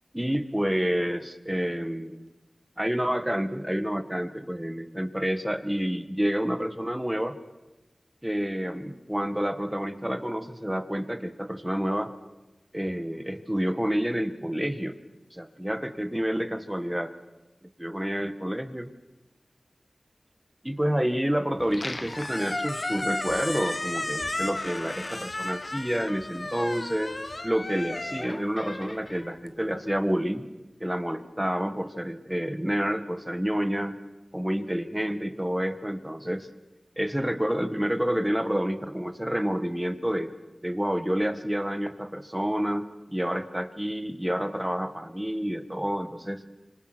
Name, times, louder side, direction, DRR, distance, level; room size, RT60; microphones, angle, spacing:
voice 1, 0.1-2.2 2.8-7.4 8.2-12.1 12.7-15.0 15.3-17.2 17.8-18.9 20.6-27.1 27.4-30.4 30.8-34.0 34.3-36.5 37.0-40.3 40.6-46.4, equal, 10° right, 10 dB, 1.8 m, -29 dB
Squeak, 21.6-29.8, left 2 dB, 45° left, 1.5 m, -34 dB
26.0 x 26.0 x 6.3 m, 1.1 s
wide cardioid pair, 45°, 0 cm